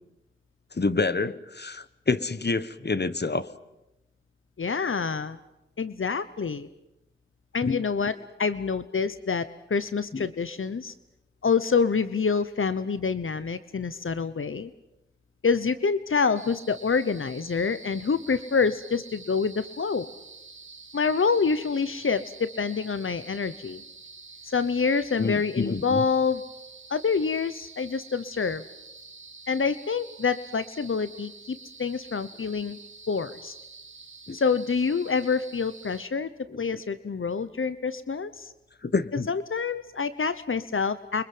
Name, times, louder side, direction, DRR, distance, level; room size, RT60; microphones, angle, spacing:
voice 1, 0.7-3.5 7.6-7.8 10.1-10.3 25.2-26.0 34.3-34.4 36.5-36.6 38.8-39.3, left 4 dB, 55° left, 14 dB, 1.4 m, -28 dB
voice 2, 4.6-5.4 5.8-6.7 7.5-10.9 11.4-14.7 15.4-20.1 20.9-23.8 24.5-26.5 26.9-28.6 29.5-32.8 33.1-33.5 34.3-36.3 36.6-38.5 39.3-41.2, left 5 dB, 80° left, 13 dB, 1.0 m, -27 dB
sound 1, 16.3-36.1, right 4 dB, 70° right, 1.9 m, -47 dB
30.0 x 24.5 x 7.8 m, 0.93 s
wide cardioid pair, 55°, 21 cm